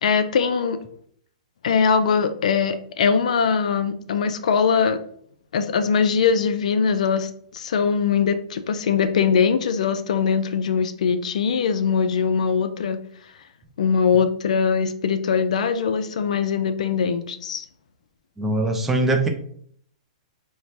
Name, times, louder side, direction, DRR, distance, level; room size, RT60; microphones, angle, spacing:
voice 1, 0.0-0.8 1.6-5.0 5.5-13.0 13.8-17.7, left 6 dB, 70° left, 10 dB, 0.3 m, -21 dB
voice 2, 18.4-19.3, right 2 dB, 5° right, 3 dB, 0.4 m, -21 dB
4.4 x 2.1 x 2.7 m, 0.63 s
hypercardioid pair, 160°, 4 cm